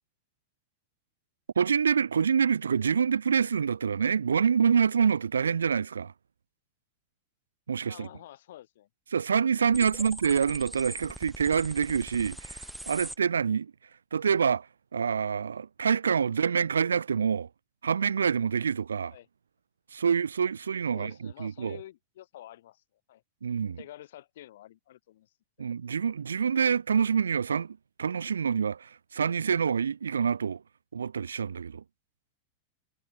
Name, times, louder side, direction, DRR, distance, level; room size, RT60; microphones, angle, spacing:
voice 1, 1.6-6.1 7.7-8.1 9.1-13.7 14.1-14.7 14.9-17.5 17.8-19.1 19.9-21.8 23.4-23.8 25.6-30.6 30.9-31.8, right 6 dB, 70° right, 0.6 m, -26 dB
voice 2, 7.9-8.9 10.0-10.1 16.4-16.5 19.1-19.3 20.9-23.2 23.8-25.8, left 13 dB, 55° left, 7.1 m, -49 dB
sound 1, 9.7-13.2, right 1 dB, 5° right, 5.8 m, -41 dB
figure-of-eight pair, 90°, 0 cm